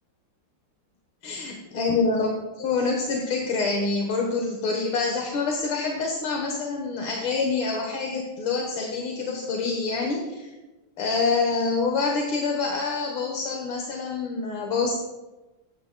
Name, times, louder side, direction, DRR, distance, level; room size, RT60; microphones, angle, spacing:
voice 1, 1.2-10.5 11.0-15.0, left 4 dB, 80° left, 0 dB, 2.0 m, -26 dB
19.0 x 9.2 x 2.2 m, 1.1 s
omnidirectional pair, 2.2 m